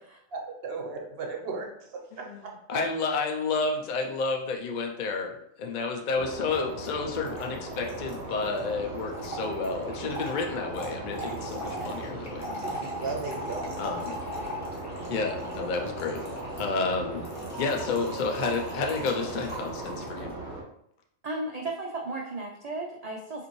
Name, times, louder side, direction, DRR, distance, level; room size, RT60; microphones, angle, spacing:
voice 1, 0.3-1.9 2.2-2.8 11.8-12.1 12.6-13.6, right 4 dB, 55° right, 1 dB, 0.9 m, -36 dB
voice 2, 2.1-2.4 2.7-12.5 13.8-14.1 15.1-16.2 16.6-17.2 17.6-20.3, left 4 dB, 60° left, 2 dB, 0.5 m, -30 dB
sound 1, 6.1-20.6, right 2 dB, 40° right, 1.2 m, -38 dB
Trickle dribble / Fill (with liquid), 6.5-6.6 6.8-6.9 7.1-20.2, equal, 15° left, 0.8 m, -40 dB
voice 3, 21.2-23.5, right 2 dB, 80° right, 0 dB, 0.3 m, -34 dB
5.1 x 2.6 x 3.0 m, 0.73 s
omnidirectional pair, 1.3 m